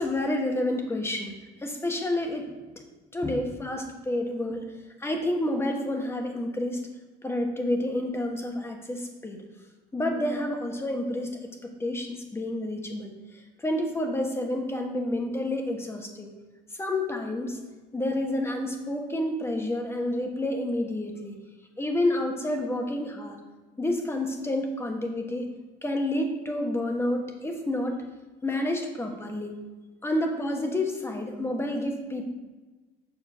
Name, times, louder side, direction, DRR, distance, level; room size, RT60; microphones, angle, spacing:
voice 1, 0.0-2.5 3.1-4.6 5.0-6.8 7.2-9.4 9.9-11.4 11.8-16.3 16.8-17.6 17.9-21.3 21.8-23.4 23.8-25.5 25.8-28.0 28.4-29.5 30.0-32.2, left 1 dB, 15° left, 3 dB, 1.3 m, -29 dB
7.4 x 4.4 x 6.8 m, 1.3 s
cardioid pair, 110°, 17 cm